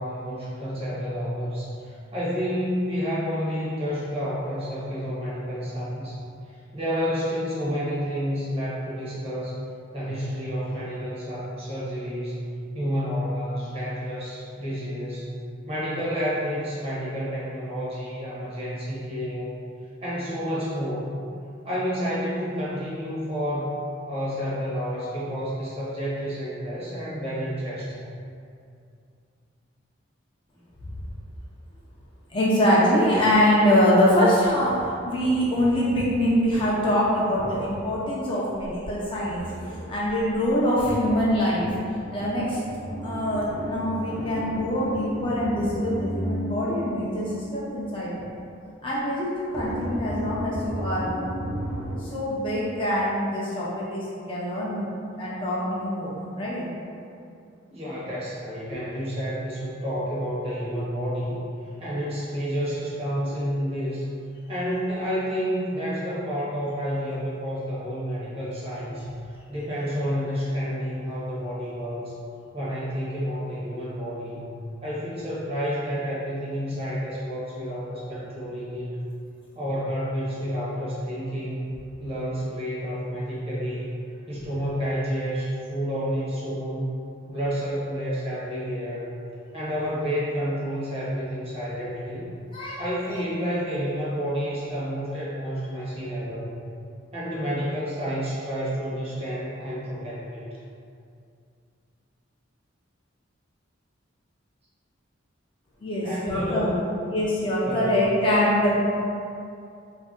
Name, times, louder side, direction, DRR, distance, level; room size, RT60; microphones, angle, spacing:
voice 1, 0.0-6.2 6.5-9.6 9.9-12.5 12.7-19.6 20.0-21.2 21.6-28.0 57.7-61.4 61.8-64.1 64.5-72.1 72.5-74.4 74.8-79.1 79.5-81.6 82.0-83.9 84.3-86.9 87.3-89.1 89.5-92.3 92.8-96.5 97.1-100.4 106.0-106.8 107.6-107.8, equal, 30° right, -8 dB, 0.8 m, -30 dB
voice 2, 32.3-39.5 39.9-41.7 42.1-42.6 43.0-48.1 48.8-51.2 52.0-54.9 55.2-56.7 92.5-92.8 93.4-93.5 105.8-106.7 107.1-108.7, equal, 25° left, -6 dB, 0.4 m, -24 dB
sound 1, 38.6-40.6 41.3-41.4 41.7-48.1 49.5-52.0, equal, 80° right, 0.6 m, -34 dB
2.5 x 2.1 x 3.5 m, 2.4 s
head